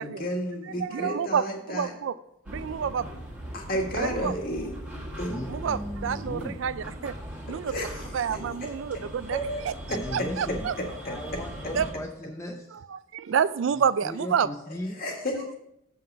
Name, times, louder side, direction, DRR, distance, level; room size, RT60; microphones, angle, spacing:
voice 1, 0.0-1.9 3.5-4.8 5.2-5.3 7.7-8.4 8.9-9.1 9.3-9.6 9.9-10.3 11.1-11.2 15.0-15.3, equal, 45° left, 1.8 m, -32 dB
voice 2, 0.8-2.1 2.5-3.1 4.0-4.3 5.5-7.1 7.5-7.7 8.1-9.4 9.6-9.7 10.1-10.7 11.7-11.9 13.1-14.5, right 7 dB, 60° right, 0.3 m, -28 dB
sound 1, 2.4-11.9, equal, 5° right, 1.6 m, -39 dB
voice 3, 5.3-6.6 9.9-10.7 11.0-12.8 13.7-15.0, left 1 dB, 15° left, 0.6 m, -37 dB
7.5 x 5.8 x 6.5 m
head